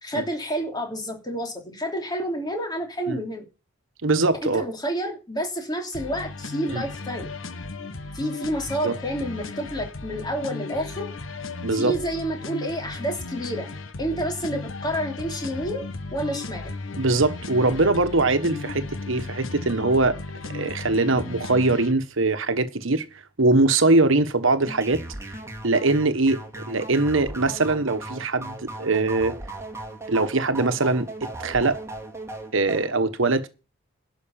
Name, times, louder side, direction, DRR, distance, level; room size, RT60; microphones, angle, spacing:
voice 1, 0.0-3.5 4.4-7.3 8.1-11.1 11.7-13.7 14.0-16.7, right 1 dB, 20° left, 3.0 m, -29 dB
voice 2, 4.0-4.6 6.7-6.8 8.8-9.0 11.6-11.9 17.0-20.2 20.5-23.0 23.4-25.3 25.6-29.4 30.1-31.8 32.5-33.5, right 2 dB, 70° right, 1.3 m, -22 dB
sound 1, 5.9-21.9, left 3 dB, 70° left, 1.3 m, -35 dB
sound 2, 24.6-32.9, right 2 dB, 15° right, 2.3 m, -37 dB
12.0 x 6.4 x 8.9 m
head